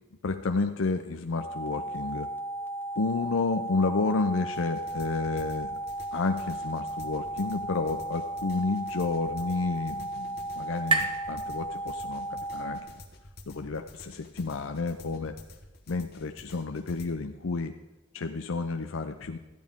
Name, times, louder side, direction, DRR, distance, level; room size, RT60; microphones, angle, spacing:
voice 1, 0.2-2.3 3.0-5.8 6.1-12.9 13.5-15.4 15.9-17.7 18.1-19.4, left 3 dB, 90° left, 5 dB, 0.6 m, -31 dB
sound 1, 1.4-12.8, right 1 dB, 10° left, 0.6 m, -35 dB
sound 2, 4.5-17.1, left 2 dB, 55° left, 1.3 m, -50 dB
sound 3, 8.6-12.3, right 4 dB, 25° right, 1.1 m, -35 dB
13.5 x 10.5 x 3.6 m, 1.1 s
head